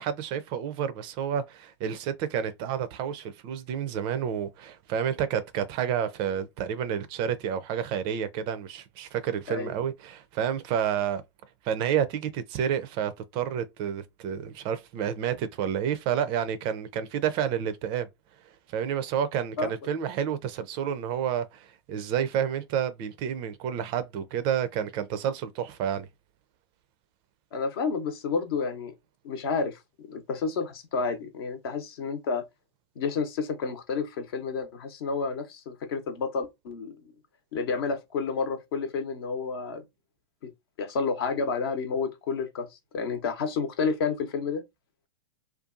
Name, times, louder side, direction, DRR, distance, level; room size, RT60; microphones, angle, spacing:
voice 1, 0.0-11.2 11.6-18.1 18.7-26.1, right 8 dB, 35° right, 0.4 m, -30 dB
voice 2, 27.5-28.9 29.2-32.4 33.0-37.1 37.5-39.8 40.4-40.5 40.8-42.7 42.9-44.6, left 5 dB, 55° left, 0.8 m, -30 dB
2.5 x 2.3 x 2.5 m
hypercardioid pair, 110°, 15 cm